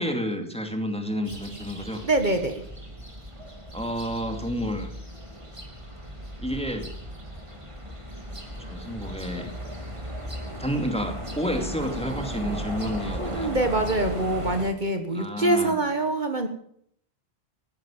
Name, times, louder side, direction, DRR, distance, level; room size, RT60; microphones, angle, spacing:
voice 1, 0.0-2.0 3.7-4.9 6.4-6.9 8.7-9.5 10.6-13.5 15.1-15.8, equal, 5° left, 5 dB, 2.4 m, -30 dB
sound 1, 1.2-14.6, equal, 30° right, 2.7 m, -36 dB
voice 2, 2.0-2.7 13.2-16.5, right 2 dB, 45° right, 6 dB, 1.6 m, -25 dB
15.5 x 12.0 x 7.3 m, 0.65 s
omnidirectional pair, 1.1 m